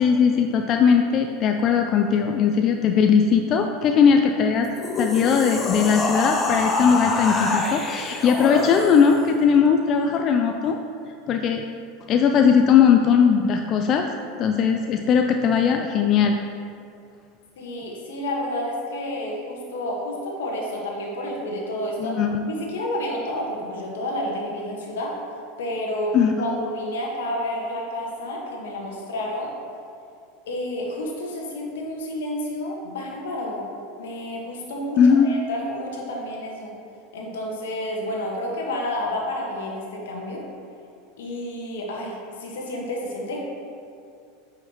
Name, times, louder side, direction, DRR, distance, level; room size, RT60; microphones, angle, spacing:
voice 1, 0.0-4.7 5.0-10.8 11.3-11.6 12.1-14.0 14.4-16.4 22.0-22.4 26.1-26.3 35.0-35.3, left 6 dB, 45° left, 4 dB, 0.4 m, -19 dB
sound 1, 4.6-9.2, left 3 dB, 30° left, 0.9 m, -26 dB
voice 2, 17.6-22.2 22.4-25.1 25.6-29.5 30.5-33.6 34.0-36.7 37.1-40.4 41.2-43.4, left 1 dB, 80° left, -1 dB, 1.5 m, -30 dB
9.2 x 5.7 x 3.1 m, 2.5 s
hypercardioid pair, 95°, 0 cm